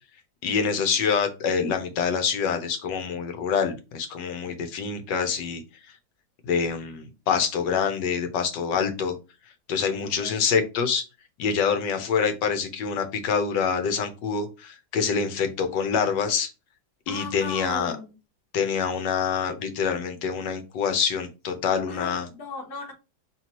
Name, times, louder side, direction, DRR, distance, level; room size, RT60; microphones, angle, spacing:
voice 1, 0.4-5.6 6.4-9.2 9.7-11.0 11.4-16.5 17.1-17.9 18.5-22.3, left 6 dB, 85° left, 1.5 m, -26 dB
voice 2, 10.0-10.4 17.1-18.1 21.9-22.9, left 4 dB, 65° left, 1.6 m, -38 dB
4.5 x 3.2 x 2.9 m
omnidirectional pair, 1.9 m